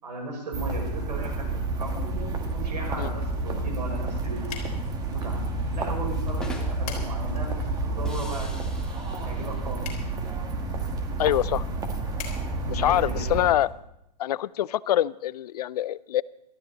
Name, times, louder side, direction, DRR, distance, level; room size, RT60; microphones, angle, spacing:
voice 1, 0.0-4.5 5.1-5.4 5.7-8.5 9.2-10.1 12.6-13.3, right 2 dB, 90° right, 1 dB, 6.1 m, -37 dB
sound 1, 0.5-13.5, right 2 dB, 20° right, 1.6 m, -30 dB
sound 2, 3.7-13.7, left 7 dB, 35° left, 3.9 m, -47 dB
sound 3, 6.2-7.0 8.0-10.0, left 1 dB, 5° left, 1.5 m, -40 dB
voice 2, 11.2-11.7 12.7-13.7 14.2-16.2, left 12 dB, 65° left, 20 dB, 0.5 m, -25 dB
18.0 x 13.0 x 4.1 m, 0.82 s
hypercardioid pair, 140°, 21 cm